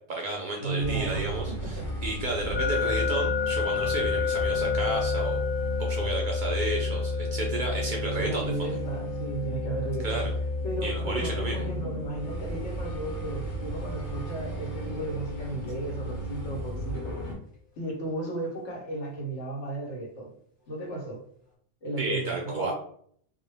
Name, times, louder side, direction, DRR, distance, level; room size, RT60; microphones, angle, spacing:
voice 1, 0.1-5.4 5.8-8.7 10.0-10.2 10.8-11.7 22.0-22.7, right 2 dB, 60° right, -1 dB, 0.5 m, -32 dB
voice 2, 0.6-1.9 8.1-10.3 10.6-17.2 17.8-20.3 20.7-21.2 21.8-22.7, right 2 dB, 80° left, 0 dB, 1.2 m, -35 dB
sound 1, 0.8-17.3, equal, 45° left, 0.9 m, -33 dB
sound 2, 2.5-15.4, left 7 dB, 10° left, 0.6 m, -33 dB
2.3 x 2.2 x 3.2 m, 0.62 s
omnidirectional pair, 1.2 m